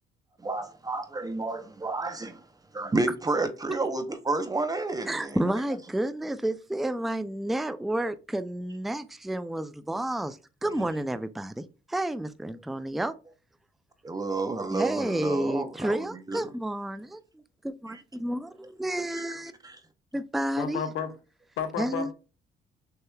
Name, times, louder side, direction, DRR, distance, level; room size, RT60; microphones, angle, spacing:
voice 1, 0.4-2.4 2.7-5.4 14.0-16.4 17.9-18.0 19.1-19.2 19.6-19.8, right 3 dB, 15° right, 0.8 m, -30 dB
voice 2, 5.1-13.1 14.7-19.5 20.1-20.9 21.8-22.1, right 1 dB, ahead, 0.4 m, -31 dB
voice 3, 20.5-21.1 21.6-22.1, left 7 dB, 80° left, 1.3 m, -32 dB
6.4 x 2.9 x 2.3 m
cardioid pair, 95°, 21 cm